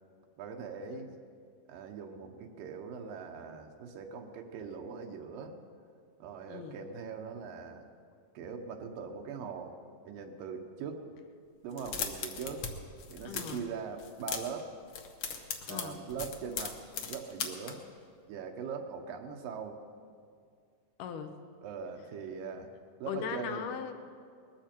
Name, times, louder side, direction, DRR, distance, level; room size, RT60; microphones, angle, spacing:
voice 1, 0.4-1.1 1.7-5.6 6.2-7.9 8.3-9.7 10.1-11.0 11.6-12.6 13.1-14.7 15.7-16.8 17.1-17.8 18.3-19.8 21.6-22.7 23.0-23.6, right 6 dB, 85° right, 3 dB, 2.7 m, -41 dB
sound 1, 11.7-12.7 13.0-13.6 14.0-14.6 14.9-17.7, left 6 dB, 60° left, 1.4 m, -37 dB
voice 2, 13.2-13.6 15.6-16.0 21.0-21.4 23.1-23.9, left 7 dB, 75° left, 7 dB, 2.4 m, -39 dB
20.0 x 14.0 x 4.4 m, 2.2 s
omnidirectional pair, 3.9 m